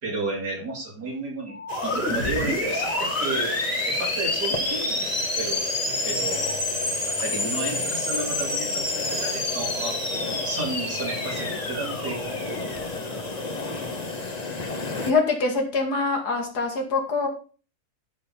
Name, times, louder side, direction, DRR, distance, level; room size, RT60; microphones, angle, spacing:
voice 1, 0.0-5.7 6.0-6.7 7.1-10.0 10.4-13.4, right 3 dB, 85° right, -1 dB, 4.4 m, -33 dB
sound 1, 1.5-13.2, left 2 dB, 55° left, 3.5 m, -28 dB
sound 2, 1.7-15.1, left 3 dB, 25° left, 1.3 m, -33 dB
voice 2, 15.0-17.3, left 4 dB, 75° left, 2 dB, 2.8 m, -24 dB
12.0 x 5.3 x 5.6 m, 0.37 s
omnidirectional pair, 1.7 m